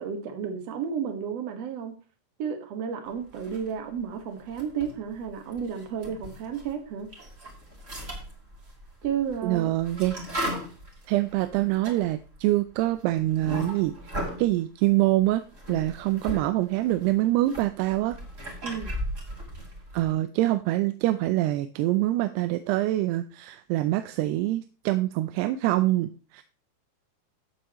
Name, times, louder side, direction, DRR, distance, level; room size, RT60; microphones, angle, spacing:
voice 1, 0.0-1.9 2.4-7.1 9.0-9.7 18.6-18.9, right 7 dB, 55° right, 5 dB, 2.0 m, -32 dB
sound 1, 3.3-4.0 4.4-6.7 7.0-14.5 15.2-16.4 16.7-20.1, equal, 20° right, 2.4 m, -37 dB
voice 2, 9.4-10.5 11.1-13.9 14.4-18.2 19.9-26.4, right 16 dB, 80° right, 10 dB, 2.5 m, -25 dB
14.0 x 8.3 x 3.0 m, 0.37 s
omnidirectional pair, 4.9 m